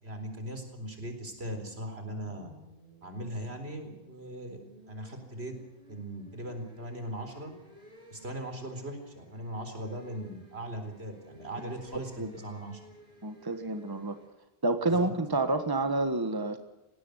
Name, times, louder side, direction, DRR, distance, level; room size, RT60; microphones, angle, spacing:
voice 1, 0.0-2.5 3.0-4.6 4.9-5.6 5.9-7.5 8.1-12.8 14.9-15.1, right 1 dB, 75° right, 6 dB, 4.3 m, -39 dB
Kawasaki Ninja Burnout, 1.4-14.3, equal, 40° right, 8.0 m, -56 dB
voice 2, 13.2-14.2 14.6-16.6, right 2 dB, 20° right, 9 dB, 1.5 m, -29 dB
19.5 x 17.0 x 8.1 m, 1.0 s
omnidirectional pair, 1.1 m